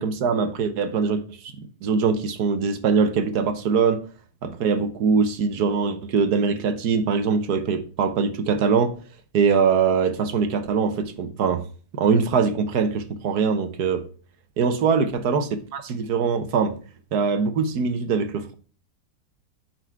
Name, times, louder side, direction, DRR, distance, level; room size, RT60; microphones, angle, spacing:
voice 1, 0.0-4.0 4.4-9.0 9.3-11.6 11.9-14.0 14.6-15.5 15.7-16.8 17.1-18.5, right 5 dB, 65° right, 1.5 m, -22 dB
8.0 x 4.9 x 4.5 m
omnidirectional pair, 1.9 m